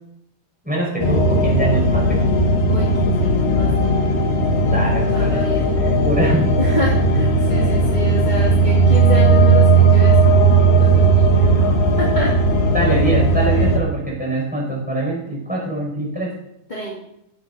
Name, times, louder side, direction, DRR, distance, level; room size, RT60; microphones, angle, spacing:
voice 1, 0.6-2.3 4.7-6.6 12.7-16.4, right 2 dB, ahead, -3 dB, 5.6 m, -24 dB
sound 1, 1.0-13.8, right 3 dB, 80° left, 3.4 m, -16 dB
voice 2, 2.7-4.2 4.6-4.8 5.1-5.7 6.6-12.4 16.7-17.0, left 1 dB, 15° left, -4 dB, 1.9 m, -29 dB
16.0 x 11.0 x 4.3 m, 0.76 s
omnidirectional pair, 3.8 m